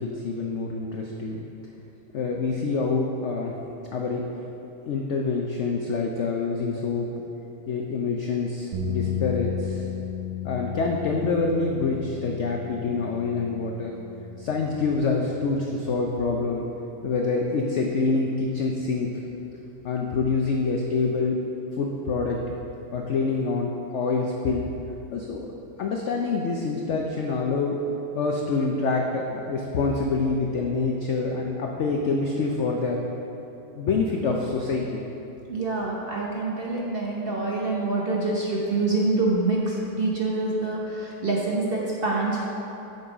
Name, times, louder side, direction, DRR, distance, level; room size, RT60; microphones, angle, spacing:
voice 1, 0.0-1.5 2.1-3.6 3.9-4.2 4.9-7.1 7.7-9.8 10.4-13.9 14.4-16.7 17.0-19.2 19.8-21.4 21.8-22.4 22.9-24.7 25.1-25.5 25.8-27.8 28.1-33.0 33.8-35.0, left 4 dB, 75° left, 0 dB, 0.6 m, -26 dB
sound 1, 8.7-15.0, left 7 dB, 80° right, 1.4 m, -34 dB
voice 2, 35.5-42.4, right 2 dB, 45° right, -4 dB, 0.8 m, -26 dB
7.8 x 5.4 x 4.9 m, 3.0 s
omnidirectional pair, 1.9 m